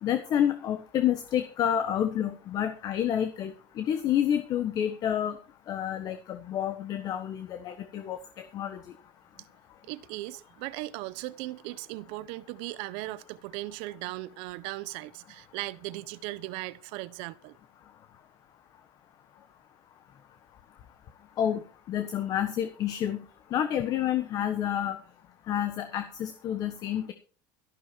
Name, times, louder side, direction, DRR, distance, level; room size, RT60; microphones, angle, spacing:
voice 1, 0.0-5.4 5.7-8.8 21.4-21.6 21.9-23.2 23.5-25.0 25.5-27.1, left 10 dB, 35° left, 1.3 m, -29 dB
voice 2, 9.8-17.6, right 18 dB, 60° right, 1.0 m, -38 dB
14.0 x 12.0 x 4.6 m
cardioid pair, 155°, 11 cm